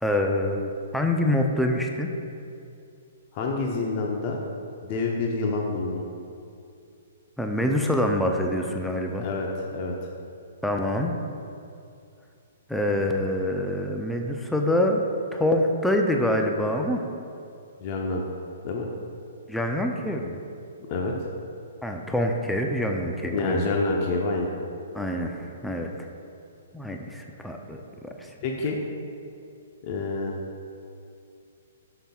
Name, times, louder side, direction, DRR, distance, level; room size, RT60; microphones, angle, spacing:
voice 1, 0.0-2.1 7.4-9.3 10.6-11.1 12.7-15.0 15.3-17.0 19.5-20.4 21.8-23.7 24.9-25.9 26.7-28.3, left 1 dB, 5° left, 2 dB, 0.5 m, -26 dB
voice 2, 3.3-4.4 4.8-6.0 9.2-9.9 17.8-18.2 18.6-18.9 20.9-21.1 23.3-24.5 28.4-28.8 29.8-30.4, left 3 dB, 40° left, 0 dB, 0.7 m, -27 dB
11.5 x 5.9 x 2.4 m, 2.5 s
hypercardioid pair, 135°, 0 cm